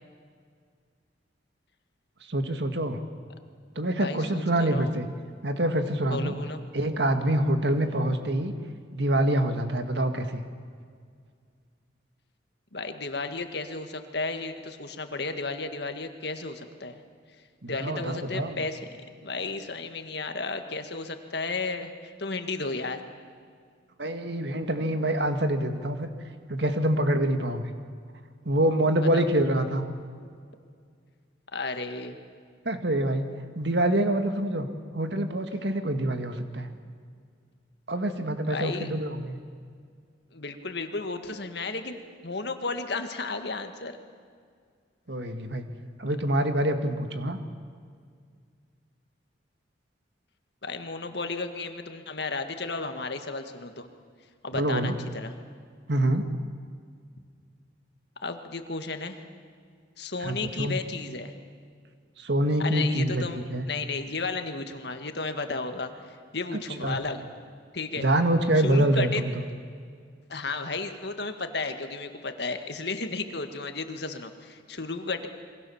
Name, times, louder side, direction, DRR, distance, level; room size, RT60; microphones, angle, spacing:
voice 1, 2.3-3.0 3.8-5.1 5.4-6.3 6.7-8.5 8.9-10.4 17.6-18.6 24.0-26.1 26.5-27.7 28.5-29.8 32.7-33.3 33.6-34.7 34.9-36.7 37.9-39.4 45.1-45.6 46.0-47.4 54.5-55.0 55.9-56.2 60.2-60.8 62.2-63.7 66.8-67.0 67.9-69.3, right 1 dB, 65° right, 7 dB, 1.9 m, -26 dB
voice 2, 4.0-4.9 6.1-6.6 12.7-17.0 17.7-18.8 19.2-23.0 29.0-29.3 31.5-32.2 38.5-38.9 40.3-44.0 50.6-53.9 54.4-55.3 58.2-59.2 60.0-61.3 62.6-63.4 63.7-67.2 67.7-68.1 68.6-69.2 70.3-75.3, left 3 dB, 60° left, 7 dB, 1.9 m, -33 dB
27.5 x 23.5 x 7.2 m, 2.1 s
head